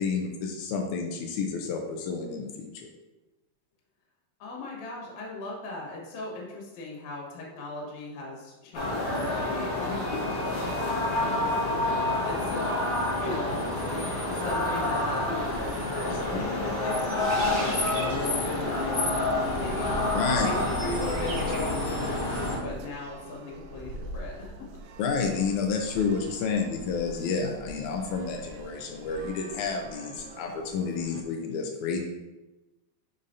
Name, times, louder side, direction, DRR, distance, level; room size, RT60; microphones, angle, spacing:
voice 1, 0.0-2.9 16.1-16.4 20.1-20.5 25.0-32.0, left 5 dB, 85° left, 3 dB, 1.7 m, -30 dB
voice 2, 4.4-14.1 14.3-15.8 16.5-24.7, left 2 dB, 60° left, -2 dB, 2.5 m, -38 dB
sound 1, 8.7-22.6, left 2 dB, 45° left, 2.2 m, -28 dB
sound 2, 14.7-21.6, right 2 dB, 55° right, 2.2 m, -44 dB
sound 3, 15.4-31.2, right 1 dB, 80° right, 2.1 m, -42 dB
7.3 x 5.5 x 2.6 m, 1.0 s
omnidirectional pair, 4.2 m